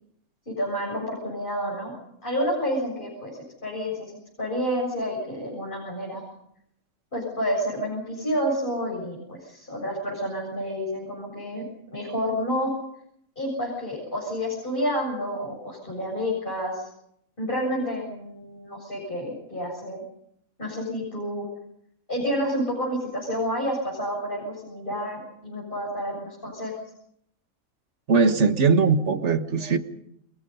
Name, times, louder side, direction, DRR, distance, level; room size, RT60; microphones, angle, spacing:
voice 1, 0.5-1.9 2.2-4.1 4.4-6.2 7.1-11.7 11.9-12.7 13.4-16.9 17.4-20.0 20.6-21.5 22.1-26.7, equal, 35° left, -3 dB, 7.5 m, -29 dB
voice 2, 28.1-29.8, right 4 dB, 55° right, 9 dB, 1.7 m, -20 dB
29.5 x 23.0 x 5.5 m, 0.73 s
omnidirectional pair, 1.4 m